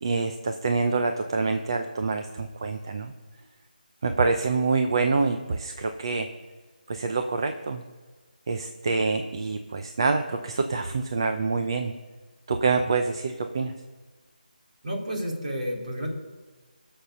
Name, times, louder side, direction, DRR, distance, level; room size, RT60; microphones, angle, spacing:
voice 1, 0.0-3.1 4.0-6.3 6.9-7.8 8.5-11.9 12.5-13.7, right 4 dB, 30° right, 6 dB, 0.6 m, -26 dB
voice 2, 14.8-16.1, equal, 50° right, -1 dB, 3.5 m, -31 dB
17.5 x 6.7 x 5.4 m, 1.3 s
figure-of-eight pair, 175°, 5 cm